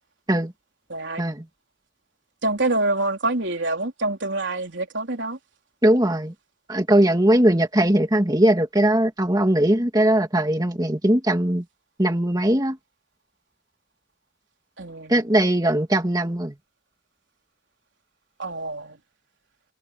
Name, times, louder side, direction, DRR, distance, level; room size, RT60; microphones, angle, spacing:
voice 1, 0.9-1.2 2.4-5.4 14.8-15.2 18.4-19.0, right 2 dB, 65° right, 3.9 m, -26 dB
voice 2, 5.8-6.3 6.7-11.6 12.0-12.8 15.1-16.5, right 1 dB, 20° right, 2.1 m, -20 dB
head